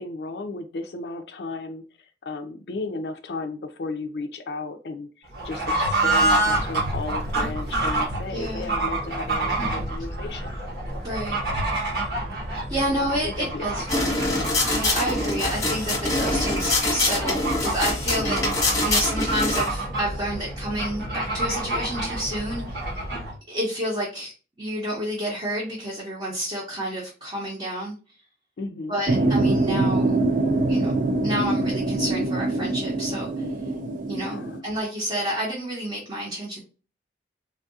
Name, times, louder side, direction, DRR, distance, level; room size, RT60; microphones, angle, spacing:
voice 1, 0.0-1.8 2.2-10.5 12.8-13.7 13.9-14.1 28.6-29.4 34.2-34.7, left 3 dB, 70° left, 6 dB, 0.4 m, -34 dB
Fowl / Bird, 5.3-23.4, right 2 dB, 65° right, 1.1 m, -28 dB
voice 2, 8.3-8.7 9.6-9.7 11.0-11.5 12.7-18.4 18.8-23.1 23.5-24.3 24.6-27.9 28.9-30.2 30.7-30.9 31.2-33.5 34.1-34.4 34.6-36.6, equal, 25° right, -5 dB, 0.8 m, -30 dB
sound 1, 13.9-19.7, left 2 dB, 20° left, 1.0 m, -24 dB
sound 2, 29.1-34.6, right 2 dB, 45° right, 0.3 m, -24 dB
3.4 x 2.3 x 2.6 m, 0.35 s
head